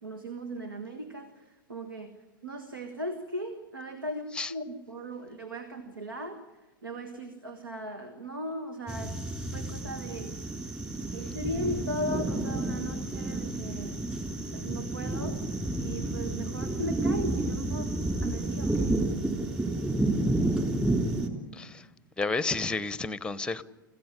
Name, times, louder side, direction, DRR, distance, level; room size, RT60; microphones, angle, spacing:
voice 1, 0.0-1.3 1.7-2.1 2.4-6.4 6.8-9.2 9.5-10.4 11.0-14.0 14.5-15.4 15.8-18.9, equal, 80° right, 9 dB, 1.6 m, -37 dB
sound 1, 8.9-21.3, right 2 dB, 15° right, 3.6 m, -30 dB
voice 2, 21.5-21.9 22.2-23.6, left 3 dB, 10° left, 17 dB, 0.9 m, -31 dB
25.5 x 15.5 x 9.8 m, 1.2 s
figure-of-eight pair, 90°, 11 cm